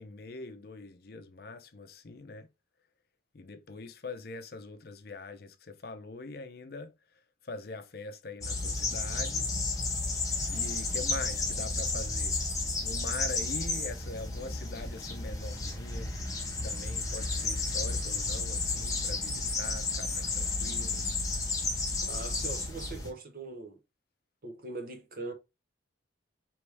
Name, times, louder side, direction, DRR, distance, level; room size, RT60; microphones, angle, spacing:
voice 1, 0.0-2.5 3.3-6.9 7.4-9.5 10.5-12.4 12.8-16.2 16.6-21.0, left 3 dB, 50° left, 0.6 m, -43 dB
sound 1, 8.4-23.1, left 3 dB, 20° left, 1.2 m, -32 dB
voice 2, 22.0-23.8 24.4-25.3, right 3 dB, 50° right, 1.0 m, -41 dB
4.7 x 3.1 x 3.3 m
head